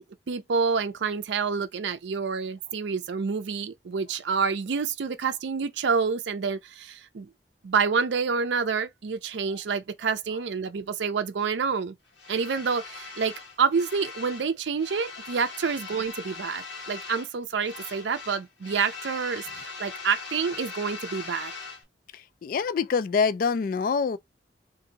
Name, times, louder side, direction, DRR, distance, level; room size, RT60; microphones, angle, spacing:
voice 1, 0.0-7.3 7.6-11.9 12.3-21.5, right 5 dB, 75° right, 0.4 m, -28 dB
sound 1, 12.2-14.5 14.8-17.3 17.6-21.8, left 4 dB, 85° left, 1.2 m, -40 dB
voice 2, 22.1-24.2, left 5 dB, 50° left, 0.3 m, -26 dB
2.7 x 2.6 x 3.9 m
head